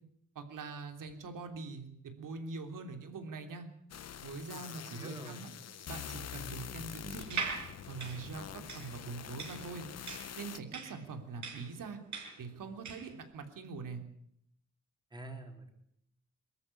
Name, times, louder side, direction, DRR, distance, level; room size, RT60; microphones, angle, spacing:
voice 1, 0.4-3.7 4.2-5.5 5.9-7.5 7.9-9.9 10.4-12.0 12.4-14.0, right 4 dB, 90° right, 6 dB, 3.4 m, -43 dB
sound 1, 3.9-10.6, left 9 dB, 55° left, 0.9 m, -45 dB
voice 2, 4.5-5.5 15.1-15.7, right 1 dB, 15° right, 4 dB, 3.7 m, -47 dB
sound 2, 7.2-13.2, right 5 dB, 70° right, 6.3 m, -41 dB
23.5 x 14.0 x 9.9 m, 0.73 s
wide cardioid pair, 175°, 31 cm